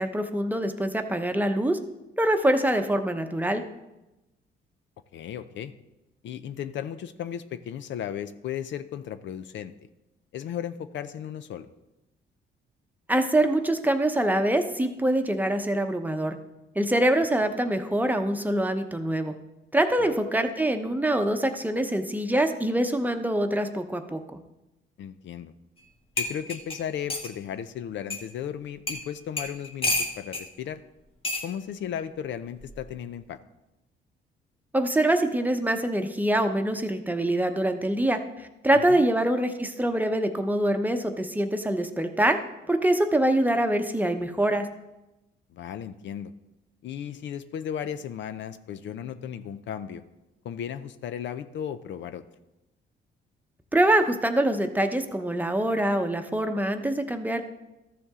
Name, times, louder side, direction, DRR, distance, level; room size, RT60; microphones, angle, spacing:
voice 1, 0.0-1.8 2.2-3.6 13.1-16.3 16.8-19.3 19.7-24.4 34.7-42.4 42.7-44.7 53.7-57.4, right 1 dB, 10° right, 6 dB, 0.9 m, -24 dB
voice 2, 5.1-5.7 6.2-9.7 10.3-11.7 20.0-20.1 25.0-25.5 26.2-30.8 31.4-33.4 38.7-39.0 45.5-46.3 46.8-50.0 50.4-52.2, left 9 dB, 70° left, 11 dB, 0.6 m, -35 dB
sound 1, 25.8-25.9 26.2-27.3 28.1-28.2 28.9-29.0 29.4-30.5 31.2-31.5 32.6-32.9, left 2 dB, 25° left, 1.5 m, -29 dB
13.5 x 7.0 x 3.7 m, 0.97 s
cardioid pair, 90°, 20 cm